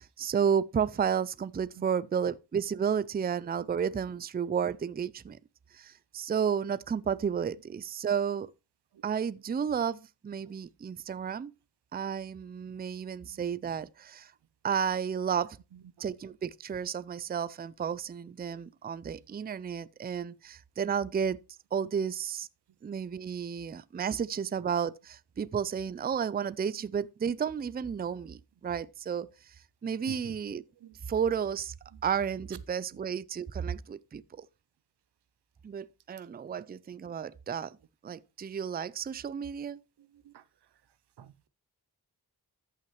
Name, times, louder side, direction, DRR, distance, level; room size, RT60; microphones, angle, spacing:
voice 1, 0.0-5.4 5.7-8.5 9.0-11.5 11.9-14.3 14.6-15.6 16.0-21.4 21.7-22.5 22.8-29.6 29.8-30.6 31.0-31.7 32.0-34.5 35.6-37.8 38.0-39.8, right 7 dB, 25° right, 0.4 m, -32 dB
voice 2, 41.2-41.5, right 10 dB, 85° right, 0.6 m, -50 dB
13.5 x 5.8 x 3.1 m
wide cardioid pair, 75°, 39 cm